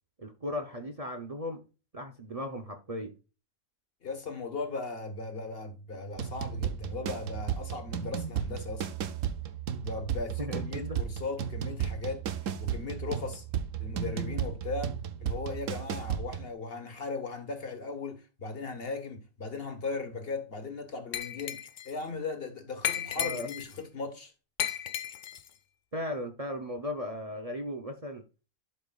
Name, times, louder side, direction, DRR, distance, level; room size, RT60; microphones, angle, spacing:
voice 1, 0.2-1.6 1.9-3.1 10.4-11.0 23.2-23.5 25.9-28.2, left 1 dB, 30° right, 0.8 m, -36 dB
voice 2, 4.0-8.9 9.8-12.3 12.6-13.4 13.8-24.3, left 3 dB, 45° left, 1.5 m, -37 dB
sound 1, 6.2-16.5, right 8 dB, 70° right, 1.1 m, -34 dB
Glass, 21.1-21.9 22.8-23.8 24.6-25.5, left 9 dB, 60° left, 0.5 m, -34 dB
12.0 x 5.3 x 2.4 m
omnidirectional pair, 1.5 m